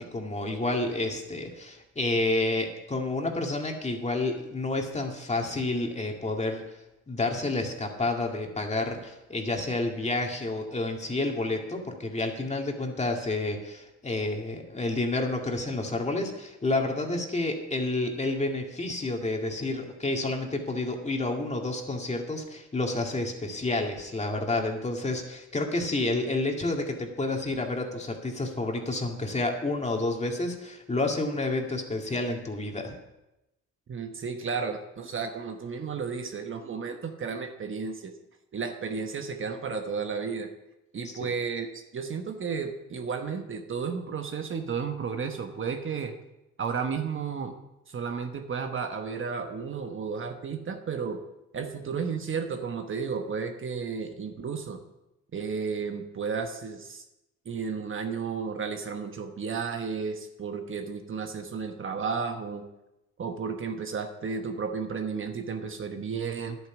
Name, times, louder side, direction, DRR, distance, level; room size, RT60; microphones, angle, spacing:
voice 1, 0.0-6.6 7.1-32.9 41.0-41.2, left 2 dB, 20° left, 2 dB, 2.2 m, -29 dB
voice 2, 33.9-38.1 38.5-40.5 40.9-46.1 46.6-47.5 47.9-51.2 51.5-54.8 55.3-57.0 57.5-62.7 63.2-66.6, right 5 dB, 40° right, 5 dB, 1.1 m, -33 dB
11.0 x 9.0 x 6.0 m, 0.94 s
cardioid pair, 90°, 30 cm